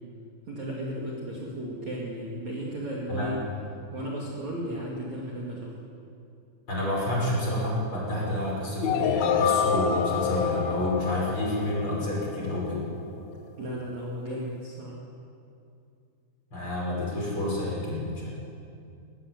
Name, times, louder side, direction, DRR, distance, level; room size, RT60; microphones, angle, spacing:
voice 1, 0.5-3.4 3.9-5.8 13.6-15.0, right 1 dB, 45° right, -3 dB, 2.9 m, -34 dB
voice 2, 6.7-12.8 16.5-18.3, left 1 dB, 25° left, -4 dB, 6.2 m, -29 dB
sound 1, 8.8-12.7, left 6 dB, 70° left, 2.6 m, -27 dB
20.5 x 18.5 x 8.0 m, 2.5 s
omnidirectional pair, 5.4 m